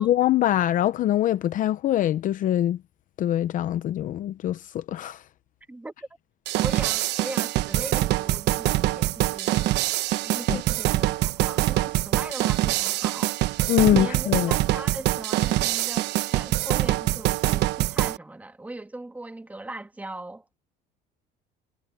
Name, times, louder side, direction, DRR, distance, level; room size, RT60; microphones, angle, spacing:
voice 1, 0.0-2.8 3.2-5.2 10.5-10.6 13.7-14.5, left 12 dB, 45° left, 0.7 m, -23 dB
sound 1, 6.5-18.2, right 16 dB, 65° right, 1.1 m, -24 dB
voice 2, 6.6-9.8 10.2-13.4 13.8-16.1 16.3-20.5, right 2 dB, 10° right, 2.2 m, -39 dB
cardioid pair, 145°, 19 cm